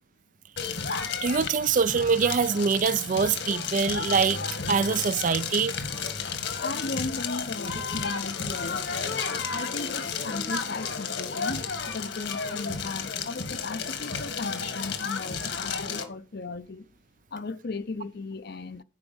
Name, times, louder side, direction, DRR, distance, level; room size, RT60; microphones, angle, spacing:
Crackle, 0.6-16.0, left 5 dB, 70° left, 1.7 m, -32 dB
voice 1, 1.2-4.4 4.7-5.7, right 5 dB, 45° right, 0.4 m, -24 dB
voice 2, 6.6-8.9 9.5-16.9 17.3-18.8, left 3 dB, 55° left, 0.6 m, -36 dB
9.6 x 5.1 x 8.0 m
head